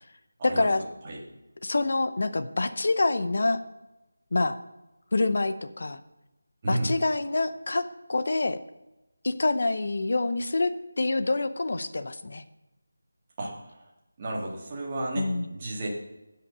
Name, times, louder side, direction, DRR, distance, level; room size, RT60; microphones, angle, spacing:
voice 1, 0.4-0.8 1.6-3.6 4.3-4.6 5.1-6.0 6.7-8.6 9.2-12.4 15.2-15.5, left 2 dB, 45° left, 11 dB, 0.8 m, -26 dB
voice 2, 6.6-6.9 13.4-13.8 14.2-15.9, right 1 dB, 15° right, -3 dB, 1.8 m, -32 dB
16.0 x 5.8 x 6.2 m, 1.0 s
figure-of-eight pair, 180°, 0 cm